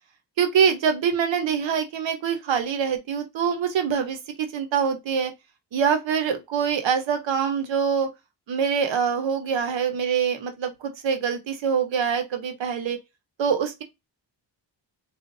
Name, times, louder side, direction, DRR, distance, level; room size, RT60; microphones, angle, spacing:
voice 1, 0.4-5.3 5.7-8.1 8.5-13.0 13.4-13.8, right 7 dB, 85° right, 0.9 m, -24 dB
3.9 x 2.4 x 2.6 m
wide cardioid pair, 105°, 44 cm